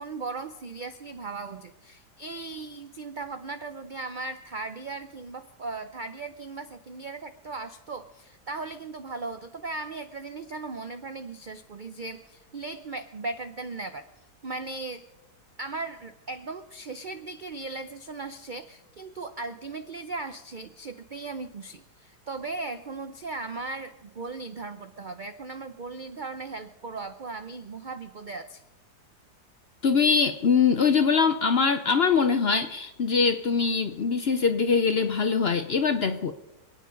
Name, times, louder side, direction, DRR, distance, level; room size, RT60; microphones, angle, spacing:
voice 1, 0.0-14.1 14.4-15.0 15.6-28.6, right 3 dB, 85° right, 9 dB, 0.4 m, -37 dB
voice 2, 29.8-36.3, left 5 dB, 55° left, 9 dB, 0.7 m, -23 dB
26.5 x 9.4 x 5.2 m, 0.96 s
omnidirectional pair, 1.8 m